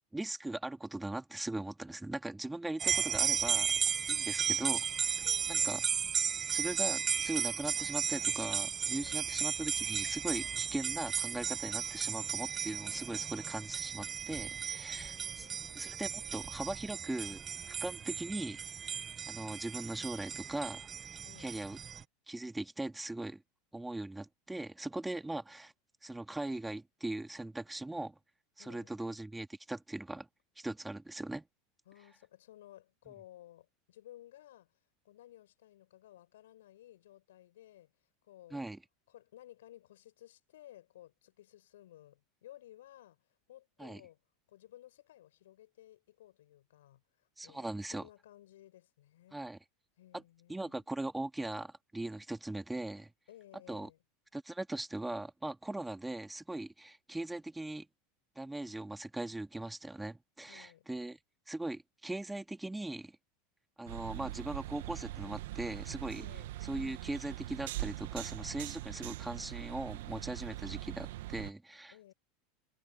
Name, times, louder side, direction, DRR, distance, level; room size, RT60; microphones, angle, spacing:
voice 1, 0.1-3.7 4.1-4.9 5.5-5.8 6.5-15.5 15.7-18.6 19.3-20.9 21.4-21.8 22.3-23.4 23.7-25.7 26.0-28.1 28.6-30.3 30.6-31.4 38.5-38.8 43.8-44.0 47.4-48.1 49.3-49.6 50.1-50.2 50.5-53.1 53.7-53.9 54.3-57.9 58.4-61.2 61.5-63.1 63.8-66.2 66.6-72.1, right 2 dB, 10° right, 2.6 m, -40 dB
sound 1, 2.8-22.0, right 7 dB, 30° right, 1.3 m, -35 dB
voice 2, 3.0-3.7 4.0-4.5 5.2-5.9 8.9-9.3 14.7-15.8 21.2-21.7 28.6-28.9 31.9-34.8 35.0-37.9 38.2-38.7 39.1-44.2 44.5-49.4 50.0-50.8 53.3-54.0 60.4-60.9 66.1-66.5 71.9-72.1, left 13 dB, 75° left, 6.0 m, -57 dB
sound 2, 63.9-71.5, right 16 dB, 70° right, 1.6 m, -42 dB
hypercardioid pair, 85°, 0 cm